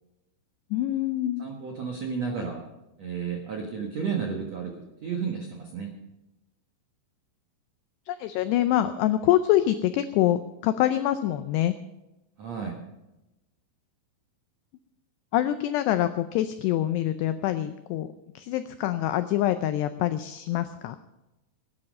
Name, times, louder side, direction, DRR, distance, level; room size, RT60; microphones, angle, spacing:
voice 1, 0.7-1.5 8.1-11.8 15.3-18.1 18.4-21.0, left 13 dB, 90° left, 10 dB, 2.4 m, -25 dB
voice 2, 1.4-2.6 3.0-4.7 5.0-5.9 12.4-12.8, right 6 dB, 75° right, 1 dB, 1.5 m, -32 dB
18.5 x 9.9 x 5.3 m, 0.97 s
omnidirectional pair, 5.5 m